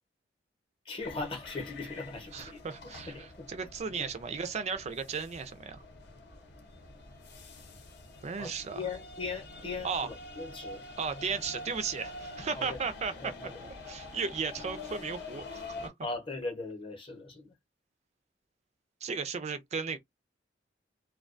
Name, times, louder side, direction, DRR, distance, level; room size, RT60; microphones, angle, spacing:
voice 1, 0.9-2.6 3.0-3.5 3.9-4.1 8.4-10.8 12.6-12.8 13.2-13.6 16.0-17.5, left 3 dB, 30° left, 0.8 m, -39 dB
sound 1, 1.0-15.9, left 2 dB, 65° left, 0.8 m, -46 dB
voice 2, 2.3-5.8 8.2-8.8 9.8-10.1 11.0-13.3 13.8-15.9 19.0-20.0, right 5 dB, 35° right, 0.4 m, -35 dB
2.3 x 2.2 x 2.4 m
head